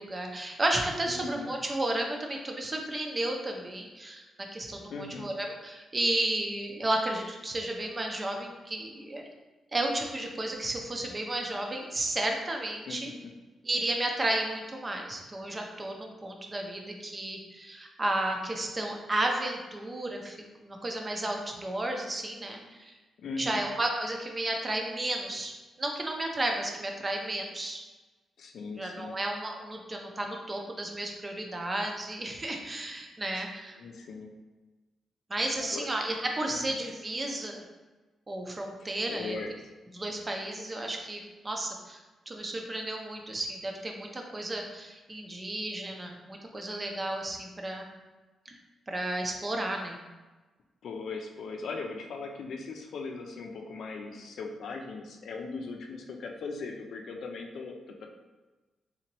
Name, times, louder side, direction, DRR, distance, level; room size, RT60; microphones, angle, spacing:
voice 1, 0.0-4.2 4.5-9.3 9.7-13.1 13.6-22.9 23.4-25.5 25.8-27.8 28.8-33.8 35.3-37.6 38.3-39.4 39.9-42.0 42.3-47.9 48.5-48.6 48.9-50.0, right 1 dB, 25° right, 2 dB, 0.6 m, -33 dB
voice 2, 1.1-1.5 4.9-5.3 12.9-13.3 23.2-23.6 28.4-29.2 33.4-33.5 33.8-34.3 35.6-36.0 36.5-36.7 38.8-39.5 50.8-58.1, left 4 dB, 70° left, 2 dB, 0.5 m, -39 dB
3.9 x 2.8 x 3.0 m, 1.2 s
cardioid pair, 100°, 0 cm